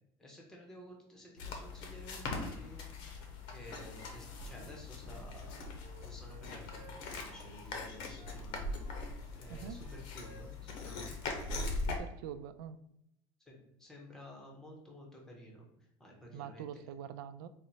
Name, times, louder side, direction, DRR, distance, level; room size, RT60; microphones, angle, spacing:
voice 1, 0.2-2.9 3.5-5.8 6.0-8.8 9.3-11.1 13.5-16.8, equal, 5° left, -1 dB, 0.7 m, -53 dB
sound 1, 1.4-12.0, left 3 dB, 50° left, 0.7 m, -41 dB
Wind instrument woodwind instrument, 5.0-8.4 8.8-11.8 12.1-12.4, right 5 dB, 50° right, 0.8 m, -60 dB
voice 2, 9.5-9.8 11.7-12.8 16.3-17.5, right 9 dB, 90° right, 12 dB, 0.4 m, -45 dB
4.3 x 2.1 x 3.9 m, 0.80 s
cardioid pair, 180°, 11 cm